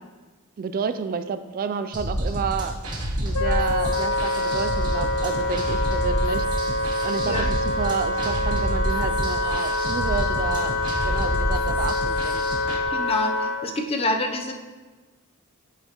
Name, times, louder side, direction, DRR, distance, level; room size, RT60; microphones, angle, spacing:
voice 1, 0.6-2.7 3.2-12.4, right 6 dB, 40° right, 11 dB, 0.3 m, -30 dB
sound 1, 1.9-12.5, equal, 20° right, 1.4 m, -29 dB
sound 2, 2.2-12.8, right 1 dB, 85° right, 1.1 m, -36 dB
Wind instrument woodwind instrument, 3.3-13.6, left 2 dB, 75° left, 0.7 m, -26 dB
voice 2, 12.9-14.5, left 2 dB, 30° left, 4 dB, 0.6 m, -26 dB
8.6 x 5.4 x 3.0 m, 1.3 s
head